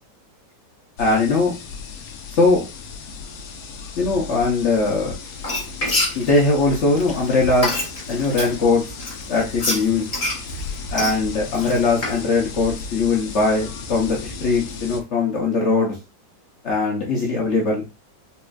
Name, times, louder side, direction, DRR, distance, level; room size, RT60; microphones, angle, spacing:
sound 1, 1.0-15.0, left 4 dB, 75° left, 1.1 m, -35 dB
voice 1, 1.0-1.5 2.3-2.6 4.0-5.1 6.1-7.8 8.1-8.8 9.3-10.1 10.9-15.9 16.6-17.8, left 3 dB, 55° left, -2 dB, 0.8 m, -20 dB
Frying (food), 5.3-8.5 9.0-12.2, left 2 dB, 30° left, 0.8 m, -26 dB
4.1 x 2.4 x 2.3 m, 0.27 s
omnidirectional pair, 1.9 m